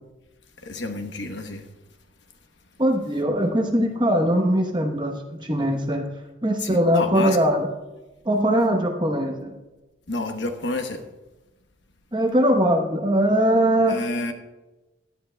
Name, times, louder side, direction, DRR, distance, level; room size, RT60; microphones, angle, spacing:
voice 1, 0.6-1.6 6.6-7.4 10.1-11.0 13.9-14.3, left 2 dB, 65° left, 6 dB, 1.0 m, -29 dB
voice 2, 2.8-5.1 5.4-6.1 6.4-7.7 8.2-9.5 12.1-14.0, right 1 dB, 25° right, 3 dB, 1.0 m, -21 dB
17.0 x 11.0 x 2.3 m, 1.1 s
head